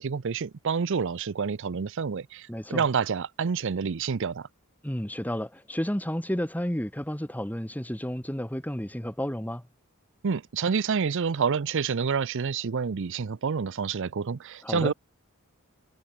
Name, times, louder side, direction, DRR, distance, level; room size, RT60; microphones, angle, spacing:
voice 1, 0.0-4.5 10.2-14.9, right 6 dB, 60° right, 0.5 m, -28 dB
voice 2, 2.5-2.8 4.8-9.6 14.6-14.9, equal, 10° left, 2.1 m, -31 dB
head